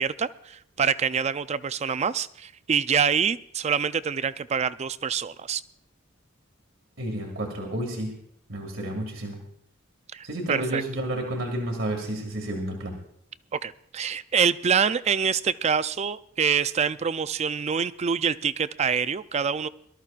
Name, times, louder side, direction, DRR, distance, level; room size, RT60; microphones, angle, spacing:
voice 1, 0.0-5.6 10.1-10.8 13.5-19.7, right 6 dB, 35° right, 14 dB, 0.4 m, -26 dB
voice 2, 7.0-8.1 8.5-9.4 10.2-12.9, right 1 dB, 80° right, 1 dB, 2.2 m, -31 dB
23.0 x 13.0 x 2.4 m, 0.70 s
head